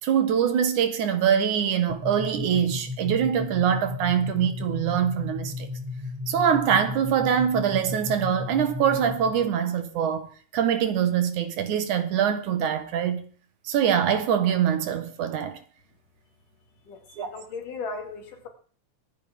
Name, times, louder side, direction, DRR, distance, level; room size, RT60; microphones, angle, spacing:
voice 1, 0.0-5.7 6.3-13.2 13.6-15.6 17.2-17.3, right 8 dB, 70° right, 2.7 m, -24 dB
sound 1, 1.9-9.5, left 3 dB, 10° right, 1.9 m, -35 dB
voice 2, 16.9-18.5, left 4 dB, 75° left, 3.7 m, -37 dB
24.0 x 9.3 x 3.6 m
omnidirectional pair, 3.7 m